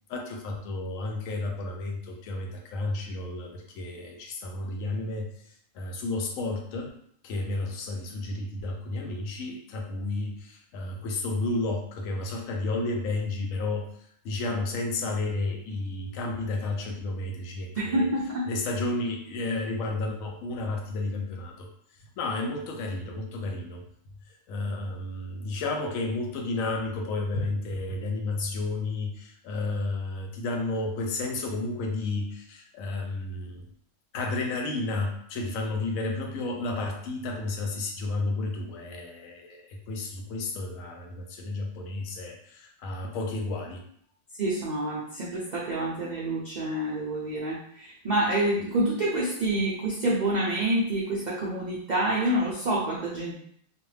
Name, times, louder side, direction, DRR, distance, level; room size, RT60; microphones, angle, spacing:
voice 1, 0.1-5.3 5.7-6.9 7.2-13.9 14.2-18.1 18.5-21.7 22.2-23.8 24.5-33.6 34.1-43.8, left 2 dB, 85° left, 2 dB, 1.0 m, -32 dB
voice 2, 17.8-18.5 44.4-53.4, right 1 dB, 70° right, -5 dB, 0.4 m, -27 dB
2.4 x 2.1 x 3.1 m, 0.66 s
omnidirectional pair, 1.4 m